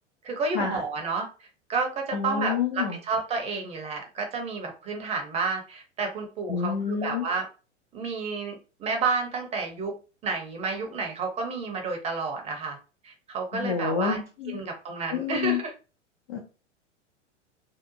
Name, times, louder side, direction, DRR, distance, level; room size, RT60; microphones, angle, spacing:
voice 1, 0.2-7.5 7.9-9.9 10.2-12.8 13.0-14.2 14.5-15.7, right 4 dB, 15° right, 3 dB, 0.6 m, -30 dB
voice 2, 2.1-3.0 6.5-7.2 13.5-14.6 15.1-15.6 16.3-16.4, left 7 dB, 25° left, 2 dB, 0.3 m, -28 dB
2.7 x 2.3 x 2.5 m, 0.33 s
figure-of-eight pair, 100°, 37 cm